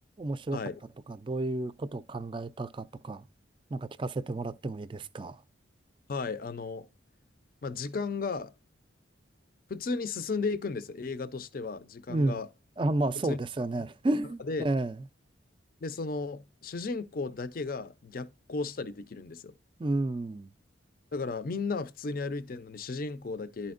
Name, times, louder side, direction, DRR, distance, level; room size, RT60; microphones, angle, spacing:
voice 1, 0.2-0.6 1.1-3.2 3.7-5.4 12.1-12.4 12.8-15.0 19.8-20.5, right 2 dB, 25° right, 0.3 m, -31 dB
voice 2, 6.1-6.9 7.6-8.5 9.7-12.5 13.2-13.4 14.4-14.7 15.8-19.5 21.1-23.7, left 4 dB, 45° left, 0.4 m, -34 dB
11.5 x 4.3 x 2.4 m
head